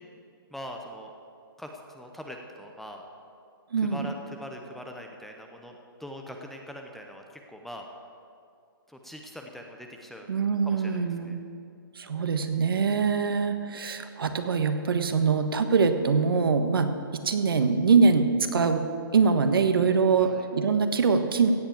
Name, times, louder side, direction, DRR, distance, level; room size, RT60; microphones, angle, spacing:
voice 1, 0.5-1.1 1.6-3.0 3.8-7.9 8.9-10.3 10.6-11.4 20.2-20.4, equal, ahead, 3 dB, 0.7 m, -42 dB
voice 2, 3.7-4.1 10.3-11.4 12.0-18.8 19.1-21.5, right 5 dB, 70° right, 7 dB, 1.4 m, -23 dB
16.5 x 8.0 x 7.3 m, 2.4 s
hypercardioid pair, 155°, 12 cm